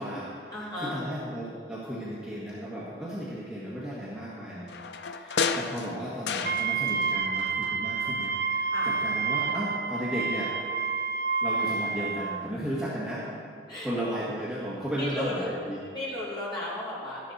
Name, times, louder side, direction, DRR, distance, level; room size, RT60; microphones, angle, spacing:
voice 1, 0.0-4.7 5.1-10.5 11.4-13.2 13.8-15.8, equal, 5° right, -9 dB, 1.6 m, -34 dB
voice 2, 0.5-0.9 8.7-8.9 13.7-13.9 15.0-15.5 15.9-17.3, left 1 dB, 25° left, -7 dB, 2.8 m, -34 dB
sound 1, 4.7-7.1 7.4-8.5 8.8-8.9, left 5 dB, 70° left, 0.5 m, -33 dB
Wind instrument woodwind instrument, 6.4-12.4, right 5 dB, 55° right, 0.5 m, -29 dB
12.5 x 10.5 x 4.2 m, 2.2 s
head